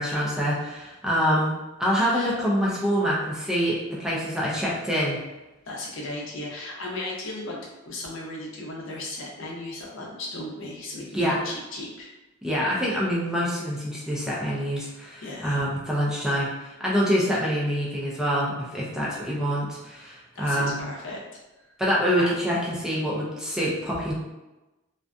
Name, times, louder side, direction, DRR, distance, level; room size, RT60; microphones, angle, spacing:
voice 1, 0.0-1.5 1.8-5.2 11.1-11.4 12.4-20.8 21.8-24.1, equal, 5° right, -6 dB, 0.4 m, -26 dB
voice 2, 5.7-7.6 7.9-12.1 15.2-15.7 20.3-21.2 22.2-22.4, left 2 dB, 70° left, -3 dB, 0.6 m, -36 dB
2.5 x 2.4 x 2.2 m, 1.1 s
head